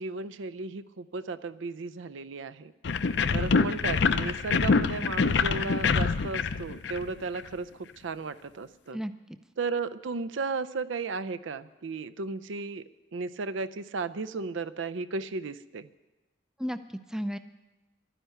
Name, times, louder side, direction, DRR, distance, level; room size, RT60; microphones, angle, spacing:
voice 1, 0.0-2.7 3.3-9.0 9.6-12.8 13.1-15.9, right 4 dB, 75° right, 15 dB, 0.5 m, -35 dB
sound 1, 2.8-7.5, left 4 dB, 60° left, 0.5 m, -25 dB
voice 2, 8.9-9.4 16.6-17.4, equal, 5° right, 10 dB, 0.4 m, -34 dB
12.0 x 10.0 x 9.1 m, 1.1 s
head